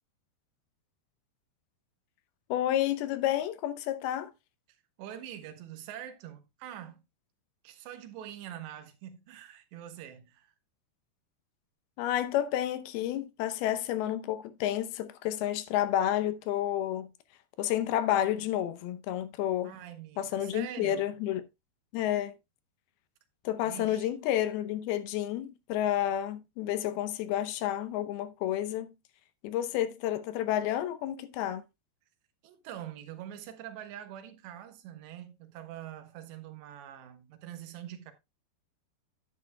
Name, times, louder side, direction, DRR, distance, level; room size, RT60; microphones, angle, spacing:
voice 1, 2.5-4.3 12.0-17.1 17.6-19.8 20.2-21.4 21.9-22.3 23.4-28.9 29.4-31.6, left 12 dB, 75° left, 2.5 m, -30 dB
voice 2, 4.7-7.0 7.6-10.6 19.6-21.2 23.6-24.1 32.4-38.1, right 11 dB, 90° right, 3.4 m, -44 dB
10.0 x 9.8 x 2.2 m
omnidirectional pair, 4.9 m